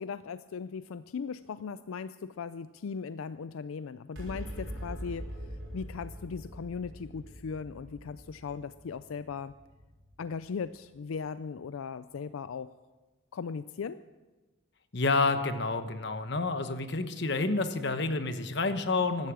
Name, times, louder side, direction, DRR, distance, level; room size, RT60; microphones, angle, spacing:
voice 1, 0.0-5.3 5.7-9.5 10.2-12.7 13.3-14.0, left 5 dB, 85° left, 14 dB, 0.4 m, -38 dB
sound 1, 4.1-10.8, equal, 65° right, 6.0 m, -43 dB
voice 2, 14.9-19.3, left 3 dB, 55° left, 9 dB, 1.1 m, -29 dB
16.0 x 12.0 x 6.2 m, 1.2 s
head